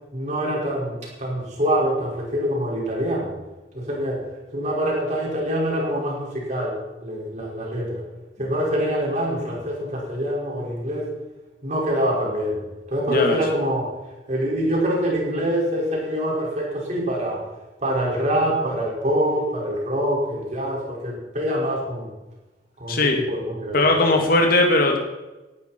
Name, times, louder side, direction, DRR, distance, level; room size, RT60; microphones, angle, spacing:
voice 1, 0.1-3.3 3.7-4.2 4.5-8.0 8.4-11.1 11.6-12.6 12.9-13.9 14.3-17.4 17.8-22.1 22.8-24.1, equal, 40° right, -3 dB, 5.3 m, -25 dB
voice 2, 13.1-13.4 22.9-23.2 23.7-25.0, left 2 dB, 55° left, 2 dB, 2.0 m, -19 dB
17.5 x 12.0 x 4.5 m, 1.1 s
head